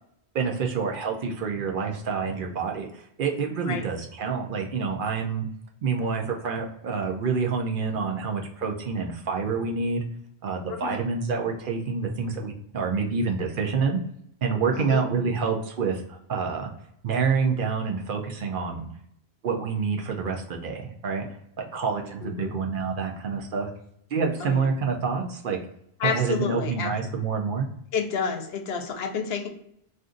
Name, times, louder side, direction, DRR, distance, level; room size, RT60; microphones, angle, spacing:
voice 1, 0.3-5.5 5.8-10.0 10.4-14.0 14.4-16.7 17.0-18.9 19.4-21.2 21.6-23.7 24.1-25.6 26.0-27.7, right 5 dB, 60° right, 2 dB, 0.7 m, -27 dB
voice 2, 10.7-11.0 14.7-15.1 22.2-22.5 24.4-24.7 26.0-26.9 27.9-29.5, left 6 dB, 75° left, 5 dB, 0.8 m, -30 dB
2.5 x 2.5 x 3.6 m, 0.73 s
omnidirectional pair, 1.1 m